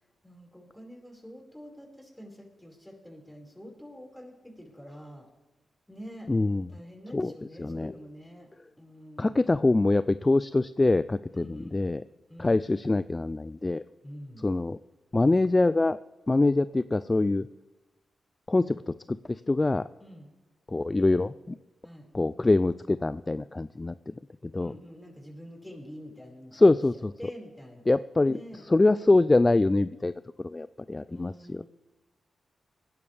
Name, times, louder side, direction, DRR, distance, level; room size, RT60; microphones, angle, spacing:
voice 1, 0.2-5.3 5.9-6.3 6.7-8.5 8.8-9.4 11.3-11.8 12.3-12.6 14.0-14.5 20.0-20.3 21.8-22.1 24.6-27.8 28.3-28.6 31.0-31.6, equal, 5° left, 0 dB, 5.0 m, -46 dB
voice 2, 6.3-6.7 7.1-7.3 7.6-7.9 9.2-12.0 12.4-13.8 14.4-14.8 15.1-16.0 16.3-17.5 18.5-18.9 19.5-19.9 20.7-21.6 22.1-23.9 24.5-24.7 26.5-27.1 27.9-28.4 28.7-30.1 30.4-31.6, left 2 dB, 30° left, 14 dB, 0.4 m, -24 dB
20.0 x 10.5 x 3.4 m, 1.1 s
supercardioid pair, 50°, 0 cm